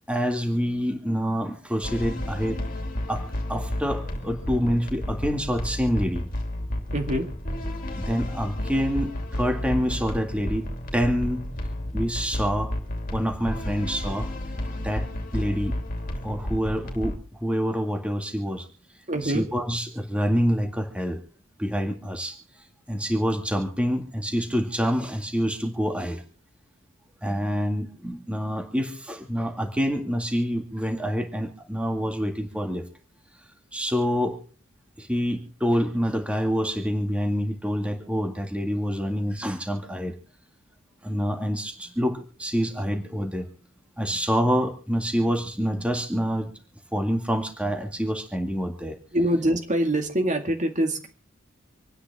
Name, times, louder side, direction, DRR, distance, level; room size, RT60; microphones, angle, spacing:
voice 1, 0.1-2.6 3.1-6.3 7.9-10.7 10.9-11.4 11.9-12.7 13.1-14.3 14.8-15.1 15.3-15.8 16.2-18.7 19.2-21.2 21.6-22.4 22.9-26.2 27.2-32.9 33.7-34.4 35.0-40.2 41.0-43.5 44.0-46.5 46.9-49.0, equal, 5° right, 4 dB, 1.9 m, -27 dB
sound 1, 1.8-17.2, left 1 dB, 45° left, 2.8 m, -32 dB
voice 2, 6.9-7.3 19.1-19.4 49.1-51.1, right 1 dB, 35° right, 5 dB, 2.1 m, -24 dB
27.0 x 9.8 x 3.5 m, 0.37 s
head